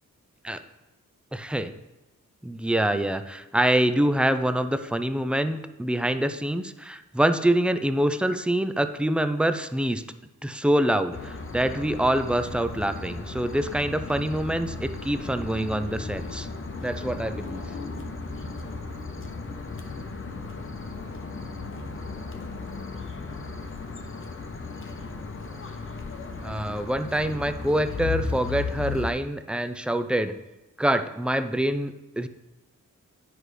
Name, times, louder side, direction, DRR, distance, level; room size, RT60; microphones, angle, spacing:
voice 1, 1.3-1.7 2.4-10.0 10.4-16.5 16.8-17.6 26.4-30.3 30.8-32.3, right 1 dB, 5° right, 10 dB, 0.4 m, -25 dB
sound 1, 11.1-29.1, left 4 dB, 40° left, 0.9 m, -35 dB
9.8 x 4.8 x 3.2 m, 1.0 s
cardioid pair, 75°, 32 cm